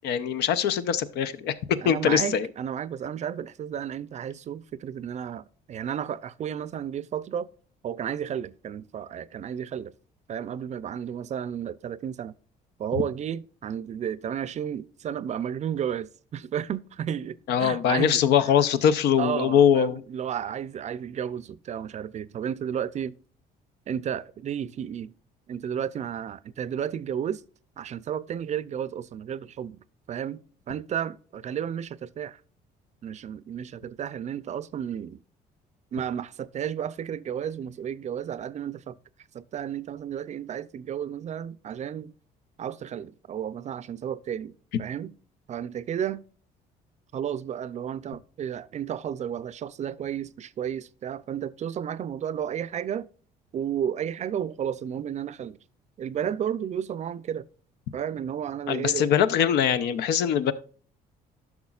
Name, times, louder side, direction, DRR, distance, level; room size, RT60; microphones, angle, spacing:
voice 1, 0.0-2.5 17.5-20.0 58.7-60.5, left 8 dB, 80° left, 0.7 m, -22 dB
voice 2, 1.8-7.5 7.8-9.9 10.3-12.3 12.8-18.6 19.2-23.1 23.9-25.1 25.5-27.4 27.8-32.4 33.0-35.2 35.9-39.0 39.3-42.1 42.6-45.2 45.5-46.2 47.1-53.1 53.5-55.6 56.0-57.4 57.9-59.1, right 9 dB, 45° right, 0.5 m, -32 dB
11.5 x 6.0 x 2.4 m
cardioid pair, 110°, 17 cm